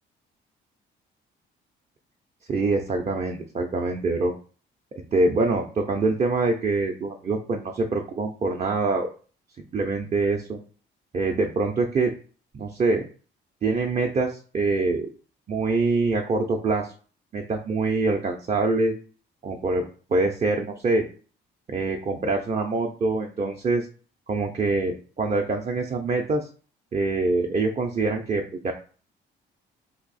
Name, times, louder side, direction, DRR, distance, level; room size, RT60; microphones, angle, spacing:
voice 1, 2.5-4.3 5.1-9.1 9.7-10.6 11.1-12.1 12.5-13.1 13.6-15.1 15.5-16.9 17.3-18.9 19.4-19.8 20.1-21.0 21.7-23.9 24.3-26.5 26.9-28.7, right 3 dB, 35° right, 2 dB, 0.5 m, -24 dB
2.9 x 2.7 x 4.0 m, 0.39 s
cardioid pair, 90°, 20 cm